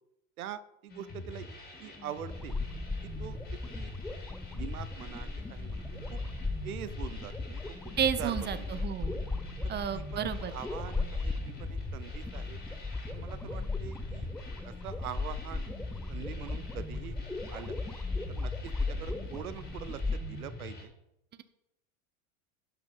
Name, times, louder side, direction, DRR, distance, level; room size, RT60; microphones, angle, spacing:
voice 1, 0.4-2.6 3.0-3.9 4.5-5.8 6.1-6.2 6.6-8.8 9.6-12.6 13.1-14.3 14.6-15.6 16.1-17.2 17.5-17.8 18.3-20.9, right 10 dB, 90° right, 15 dB, 0.8 m, -44 dB
sound 1, 0.9-20.8, left 2 dB, 20° left, 3.7 m, -45 dB
sound 2, 2.3-20.2, left 3 dB, 5° left, 0.3 m, -37 dB
voice 2, 8.0-9.2 9.7-10.5, right 8 dB, 25° right, 12 dB, 0.8 m, -31 dB
11.5 x 5.7 x 5.7 m, 0.84 s
hypercardioid pair, 105°, 42 cm